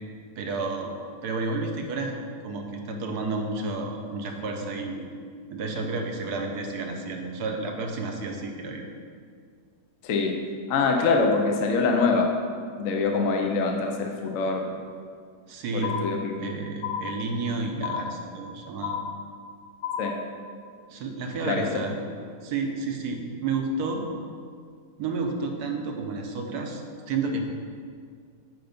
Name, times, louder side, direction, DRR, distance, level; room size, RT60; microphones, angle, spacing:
voice 1, 0.4-2.1 2.4-5.1 5.5-8.8 15.5-16.0 16.4-19.0 20.9-22.0 22.4-24.1 25.0-27.4, right 3 dB, 65° right, 3 dB, 1.3 m, -31 dB
voice 2, 10.7-12.3 12.8-14.7 15.7-16.4 20.0-20.1 21.4-21.6, left 4 dB, 60° left, 2 dB, 1.0 m, -24 dB
sound 1, 15.8-16.5 16.8-17.5 17.8-18.5 18.8-19.5 19.8-20.5, left 7 dB, 80° left, 1.2 m, -33 dB
7.9 x 5.3 x 5.2 m, 2.1 s
omnidirectional pair, 1.9 m